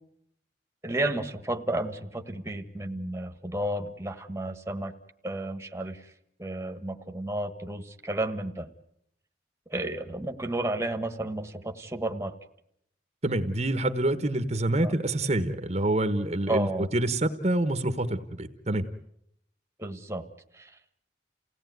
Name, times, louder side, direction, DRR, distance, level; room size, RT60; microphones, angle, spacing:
voice 1, 0.8-4.9 5.2-6.1 6.4-8.7 9.7-12.4 14.8-15.0 16.5-16.9 19.8-20.2 20.5-20.8, right 1 dB, 15° right, 6 dB, 1.4 m, -32 dB
voice 2, 13.2-16.7 16.9-18.8, right 1 dB, 35° right, 9 dB, 1.2 m, -27 dB
29.0 x 17.5 x 9.4 m, 0.76 s
head